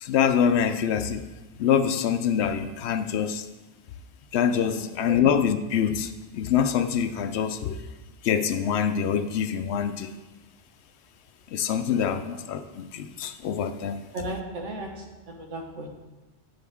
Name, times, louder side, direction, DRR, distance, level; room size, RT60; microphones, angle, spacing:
voice 1, 0.0-1.2 1.6-3.5 4.3-7.8 8.2-10.1 11.5-14.0, left 8 dB, 70° left, 10 dB, 0.8 m, -25 dB
voice 2, 4.7-5.2 11.8-12.3 14.1-15.9, right 2 dB, 90° right, 2 dB, 1.5 m, -36 dB
8.4 x 6.5 x 3.5 m, 1.1 s
omnidirectional pair, 1.2 m